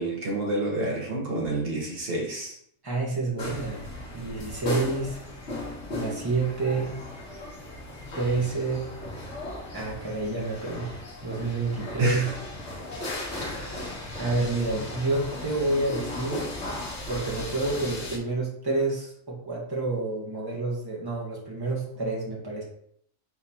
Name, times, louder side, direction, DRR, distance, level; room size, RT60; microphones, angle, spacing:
voice 1, 0.0-2.6 12.0-12.3 13.3-14.0, right 2 dB, 45° right, -2 dB, 1.3 m, -29 dB
voice 2, 2.8-3.8 4.1-5.2 5.9-6.9 8.1-8.9 9.7-10.9 11.2-12.3 14.2-16.5 17.1-22.6, right 3 dB, 20° right, -4 dB, 1.2 m, -28 dB
sound 1, 3.4-18.2, left 1 dB, 55° left, 1.4 m, -36 dB
4.0 x 3.9 x 2.8 m, 0.66 s
omnidirectional pair, 1.4 m